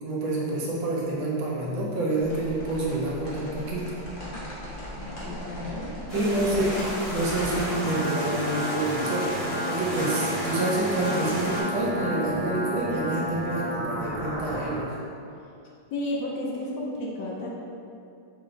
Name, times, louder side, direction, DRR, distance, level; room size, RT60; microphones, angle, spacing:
voice 1, 0.0-3.9 6.1-6.8 7.1-9.3 9.6-14.9, right 2 dB, 70° right, -4 dB, 1.4 m, -28 dB
sound 1, 2.2-7.6, equal, 50° left, 0.6 m, -38 dB
voice 2, 5.0-6.7 15.9-17.5, left 1 dB, 75° left, -3 dB, 1.2 m, -32 dB
sound 2, 6.1-11.6, equal, 20° left, 1.0 m, -33 dB
sound 3, 6.9-14.8, equal, 55° right, 0.9 m, -32 dB
4.9 x 2.2 x 3.9 m, 2.5 s
omnidirectional pair, 2.3 m